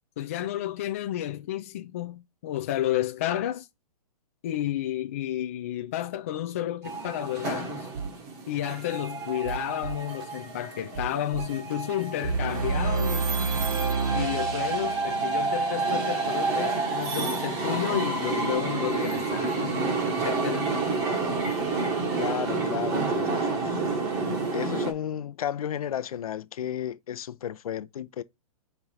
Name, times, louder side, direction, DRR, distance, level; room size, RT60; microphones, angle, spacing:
voice 1, 0.2-3.7 4.4-7.9 8.5-13.3 14.1-19.9 20.2-20.7, left 12 dB, 25° left, 0.3 m, -31 dB
sound 1, 6.8-24.9, right 3 dB, 15° right, 1.0 m, -29 dB
sound 2, 7.9-8.1 8.7-8.8 9.3-10.3 10.8-11.9 12.3-13.3 13.6-13.8, right 5 dB, 40° right, 0.6 m, -35 dB
sound 3, 12.2-15.5, right 5 dB, 85° right, 0.8 m, -28 dB
voice 2, 22.2-24.0 24.5-28.2, left 10 dB, 70° left, 0.7 m, -33 dB
4.6 x 3.8 x 5.6 m
hypercardioid pair, 175°, 19 cm